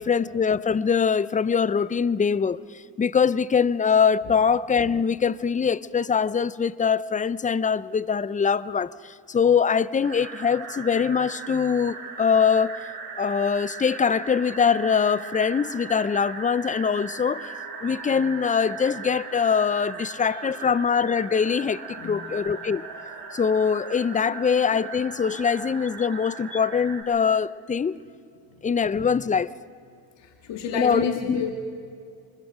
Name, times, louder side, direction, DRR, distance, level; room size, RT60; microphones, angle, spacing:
voice 1, 0.0-2.6 3.0-8.9 9.3-12.8 13.2-17.5 17.8-22.8 23.3-28.0 28.6-29.5 30.7-31.4, left 6 dB, 15° left, 19 dB, 0.4 m, -23 dB
sound 1, 10.0-27.0, right 5 dB, 55° right, 4.6 m, -38 dB
voice 2, 21.9-22.3 28.6-28.7 29.0-29.1 30.2-31.5, left 7 dB, 65° left, 3 dB, 1.9 m, -30 dB
25.5 x 21.0 x 5.1 m, 2.4 s
supercardioid pair, 75°, 46 cm